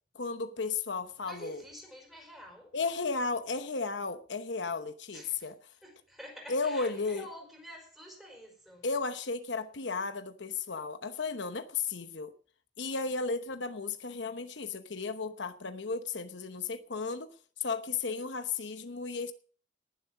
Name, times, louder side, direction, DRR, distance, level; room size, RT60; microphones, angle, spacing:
voice 1, 0.1-1.6 2.7-5.5 6.5-7.2 8.8-12.3 12.8-17.3 17.6-19.3, left 4 dB, 75° left, 0.9 m, -34 dB
voice 2, 1.2-2.8 5.1-5.5 5.8-8.9, equal, ahead, 5.0 m, -48 dB
19.5 x 7.6 x 5.4 m
head